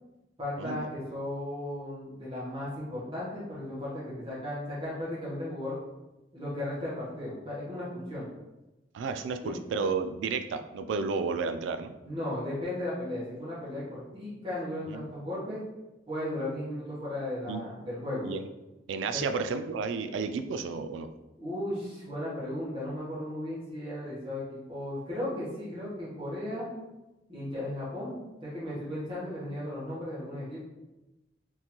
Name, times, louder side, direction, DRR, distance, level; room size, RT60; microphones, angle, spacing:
voice 1, 0.4-5.8 6.3-8.3 9.4-9.6 12.0-15.6 16.1-18.3 19.1-19.2 21.4-24.4 24.7-26.7 27.3-30.6, left 1 dB, 30° right, -10 dB, 1.0 m, -35 dB
voice 2, 8.9-11.9 14.9-15.0 17.5-17.6 18.2-18.5 18.9-21.1, right 4 dB, 90° right, 8 dB, 0.3 m, -32 dB
3.7 x 2.6 x 2.9 m, 1.0 s
head